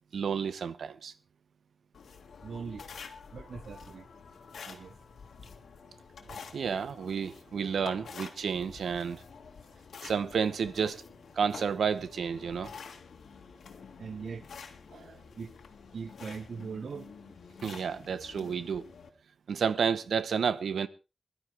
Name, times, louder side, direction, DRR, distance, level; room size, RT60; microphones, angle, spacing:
voice 1, 0.1-1.1 6.5-9.2 10.0-11.0 11.3-12.7 14.9-15.2 17.6-18.8 19.5-20.9, right 6 dB, 85° right, 0.9 m, -31 dB
sound 1, 1.9-19.1, left 5 dB, 85° left, 2.0 m, -48 dB
voice 2, 2.4-2.8 3.3-4.0 4.6-4.9 14.0-14.4 15.4-15.5 15.9-17.0, right 6 dB, 65° right, 0.6 m, -40 dB
21.5 x 12.0 x 3.4 m
wide cardioid pair, 175°, 0 cm